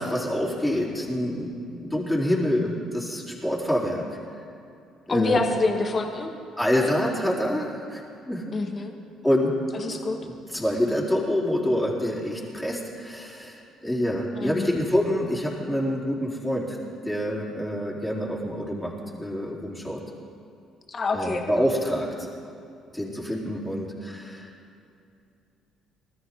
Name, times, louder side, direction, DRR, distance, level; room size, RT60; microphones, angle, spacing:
voice 1, 0.0-4.0 5.1-5.4 6.6-8.5 9.2-9.6 9.9-16.8 17.0-20.0 21.1-22.3 22.9-24.5, equal, 5° left, -4 dB, 4.0 m, -27 dB
voice 2, 5.1-6.3 8.5-8.9 9.7-10.2 14.4-14.8 20.9-21.5, left 3 dB, 40° left, 4 dB, 1.8 m, -27 dB
21.0 x 13.0 x 3.9 m, 2.6 s
hypercardioid pair, 55°, 0 cm